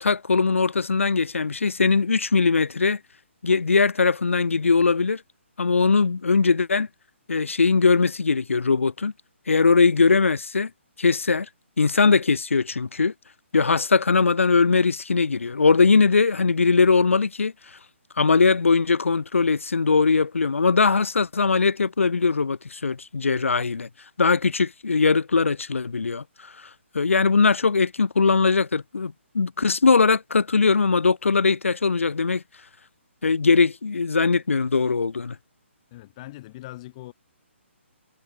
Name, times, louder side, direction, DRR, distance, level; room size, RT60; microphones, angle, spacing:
voice 1, 0.0-3.0 3.4-5.2 5.6-6.9 7.3-9.1 9.5-10.7 11.0-11.5 11.8-13.1 13.5-17.5 18.2-23.9 24.2-26.2 26.9-32.4 33.2-35.4, left 4 dB, 80° left, 0.4 m, -20 dB
voice 2, 35.9-37.1, left 17 dB, 30° left, 1.5 m, -41 dB
figure-of-eight pair, 140°, 7 cm